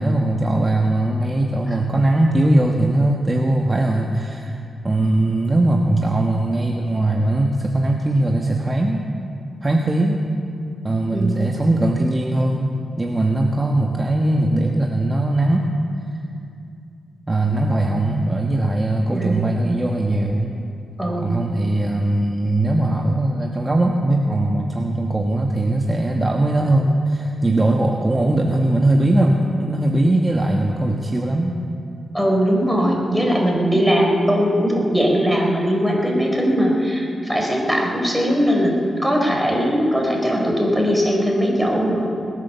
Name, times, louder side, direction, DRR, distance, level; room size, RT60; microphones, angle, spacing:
voice 1, 0.0-9.0 9.6-10.2 10.8-15.7 17.3-20.5 21.2-31.6, right 1 dB, 25° right, 1 dB, 1.3 m, -20 dB
voice 2, 19.1-19.5 21.0-21.5 32.1-42.1, equal, ahead, -1 dB, 4.6 m, -20 dB
20.5 x 9.0 x 7.0 m, 2.5 s
cardioid pair, 55°, 0 cm